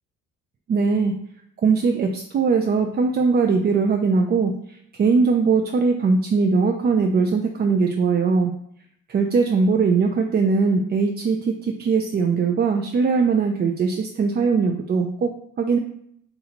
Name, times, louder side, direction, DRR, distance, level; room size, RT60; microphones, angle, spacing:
voice 1, 0.7-1.1 1.6-8.5 9.1-15.8, right 4 dB, 35° right, 4 dB, 0.4 m, -20 dB
4.0 x 2.7 x 4.2 m, 0.71 s
cardioid pair, 90°, 30 cm